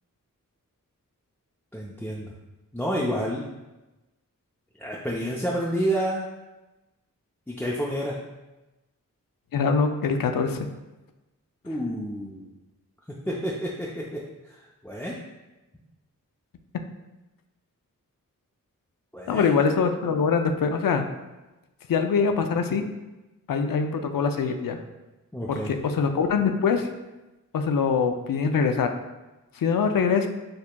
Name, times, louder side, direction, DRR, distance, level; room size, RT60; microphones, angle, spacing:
voice 1, 1.7-2.3 2.7-3.5 4.8-6.3 7.5-8.2 11.6-12.5 13.1-15.2 19.1-19.5 25.3-25.7, equal, 5° left, -5 dB, 0.5 m, -29 dB
voice 2, 9.5-10.6 19.3-21.1 21.9-22.8 23.5-24.8 25.5-26.9 27.5-28.9 29.6-30.3, left 5 dB, 80° left, 6 dB, 0.5 m, -23 dB
6.4 x 2.8 x 2.2 m, 1.1 s
wide cardioid pair, 65°, 33 cm